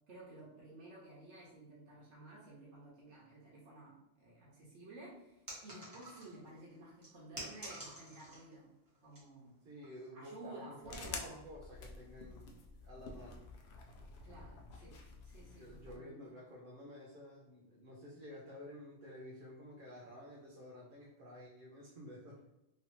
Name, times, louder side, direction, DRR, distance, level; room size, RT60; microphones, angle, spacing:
voice 1, 0.1-8.7 9.0-9.5 10.1-11.4 14.2-15.0 15.2-16.2, right 2 dB, 85° right, -5 dB, 1.2 m, -53 dB
sound 1, 5.5-6.5 7.0-8.5 8.9-9.2 9.8-10.1, right 1 dB, 20° right, 1.0 m, -49 dB
voice 2, 9.6-13.5 15.6-22.5, equal, 55° right, -3 dB, 0.7 m, -52 dB
sound 2, 10.8-16.0, left 3 dB, 70° left, 0.8 m, -49 dB
3.1 x 2.7 x 2.9 m, 0.89 s
omnidirectional pair, 1.2 m